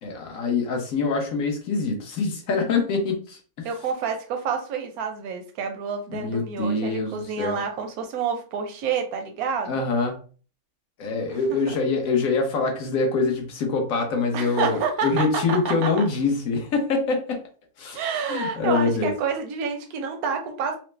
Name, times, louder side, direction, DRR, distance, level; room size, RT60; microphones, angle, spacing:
voice 1, 0.0-3.7 6.1-7.6 9.6-10.2 11.0-17.4 17.8-19.1, left 4 dB, 70° left, 2 dB, 1.3 m, -25 dB
voice 2, 3.6-9.8 11.3-11.8 14.3-16.0 17.9-20.8, right 6 dB, 80° right, 4 dB, 1.1 m, -28 dB
4.5 x 2.0 x 3.2 m, 0.39 s
omnidirectional pair, 1.5 m